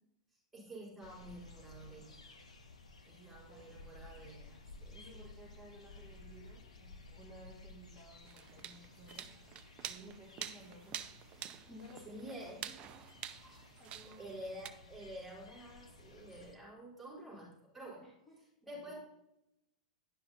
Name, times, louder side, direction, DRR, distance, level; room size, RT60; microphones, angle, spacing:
voice 1, 0.3-2.2 3.0-5.2 12.0-12.7 14.2-18.0 18.6-18.9, right 1 dB, 5° right, -6 dB, 3.8 m, -49 dB
sound 1, 1.0-16.5, left 3 dB, 80° left, 1.2 m, -56 dB
voice 2, 3.1-3.8 4.9-9.3 9.9-11.0 11.6-12.8 13.4-14.7 18.0-18.4 18.7-18.9, right 1 dB, 15° left, -5 dB, 2.4 m, -56 dB
sound 2, 8.3-14.7, right 10 dB, 35° right, 0.6 m, -48 dB
10.5 x 5.8 x 4.0 m, 0.87 s
hypercardioid pair, 100°, 3 cm